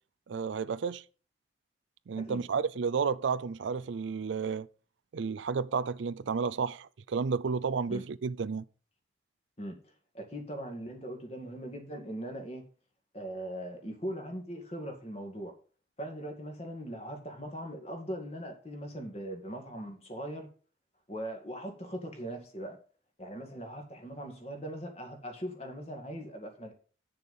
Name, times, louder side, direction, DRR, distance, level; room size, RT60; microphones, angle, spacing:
voice 1, 0.3-1.0 2.1-4.7 5.1-8.6, right 5 dB, 80° right, 0.4 m, -32 dB
voice 2, 10.1-12.7 13.1-15.5 16.0-20.5 21.1-22.8 23.2-26.7, equal, 35° left, 2.1 m, -40 dB
8.1 x 6.8 x 5.4 m
head